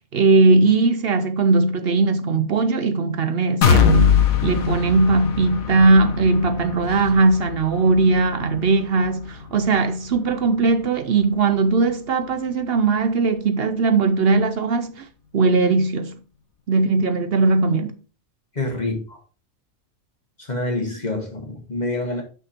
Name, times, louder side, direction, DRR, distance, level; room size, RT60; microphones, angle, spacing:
voice 1, 0.1-4.1 4.4-15.1 15.3-16.1 16.7-18.0, right 3 dB, 55° right, 0.7 m, -19 dB
sound 1, 3.6-11.4 11.8-11.9 12.3-12.4, left 6 dB, 85° left, 1.4 m, -23 dB
voice 2, 18.5-19.2 20.4-22.2, left 2 dB, 35° left, 1.4 m, -27 dB
6.3 x 5.8 x 4.3 m
omnidirectional pair, 1.4 m